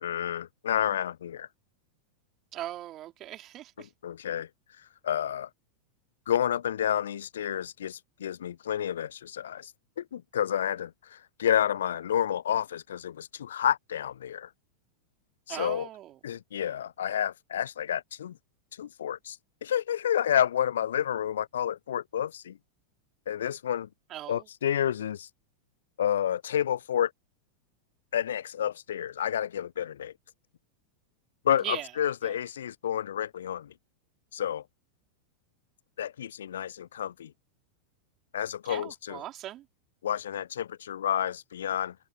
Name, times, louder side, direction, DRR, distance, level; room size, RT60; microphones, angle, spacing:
voice 1, 0.0-1.5 3.8-4.5 5.0-5.5 6.3-9.7 10.0-14.5 15.5-15.9 16.2-18.4 18.8-22.6 23.3-23.9 24.3-25.3 26.0-27.1 28.1-30.1 31.4-33.7 34.3-34.6 36.0-37.3 38.3-39.2 40.0-41.9, left 10 dB, 65° left, 0.4 m, -30 dB
voice 2, 2.5-3.9 15.5-16.2 24.1-24.5 31.6-31.9 32.2-32.3 38.6-39.7, right 13 dB, 35° right, 4.6 m, -39 dB
figure-of-eight pair, 90°, 0 cm